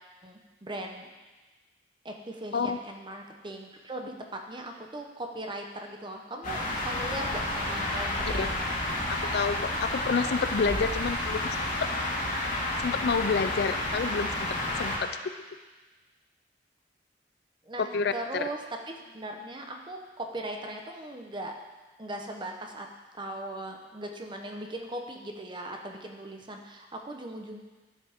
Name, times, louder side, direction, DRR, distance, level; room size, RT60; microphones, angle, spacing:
voice 1, 0.2-1.1 2.0-8.5 17.6-18.6 19.1-21.5 22.0-22.9 23.1-27.6, right 1 dB, 25° right, 3 dB, 0.9 m, -39 dB
sound 1, 6.4-15.0, left 1 dB, 50° left, 2.0 m, -30 dB
voice 2, 9.1-11.4 12.8-15.1 17.8-18.5, left 5 dB, 65° left, 11 dB, 0.4 m, -29 dB
12.0 x 7.2 x 3.6 m, 1.2 s
head